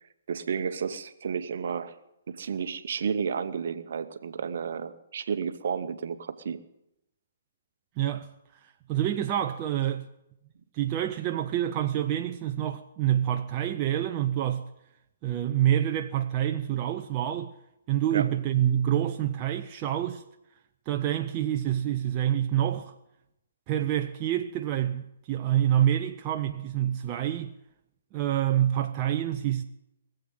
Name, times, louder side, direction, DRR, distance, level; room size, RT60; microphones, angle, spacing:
voice 1, 0.3-2.0 2.3-6.6 18.1-18.3, right 6 dB, 50° right, 1.0 m, -32 dB
voice 2, 8.0-8.3 8.6-10.1 10.7-14.6 15.2-17.5 17.9-20.2 20.9-22.9 23.7-27.5 28.1-29.6, right 11 dB, 25° right, 0.7 m, -27 dB
19.5 x 7.9 x 9.2 m
figure-of-eight pair, 125°, 0 cm